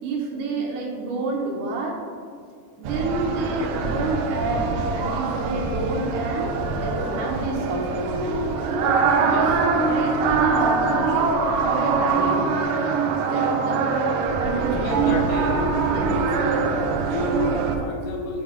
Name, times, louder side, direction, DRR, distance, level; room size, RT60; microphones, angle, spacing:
voice 1, 0.0-2.0 2.8-8.1 8.8-11.3 11.6-12.4 13.3-13.8 14.4-15.2 15.9-16.0, right 3 dB, 75° right, -1 dB, 2.1 m, -29 dB
sound 1, 2.8-17.8, right 4 dB, 90° right, 1.6 m, -23 dB
voice 2, 14.5-15.8 16.0-16.3 16.6-18.4, left 2 dB, 80° left, 1 dB, 2.1 m, -31 dB
8.0 x 4.3 x 3.6 m, 2.1 s
omnidirectional pair, 4.0 m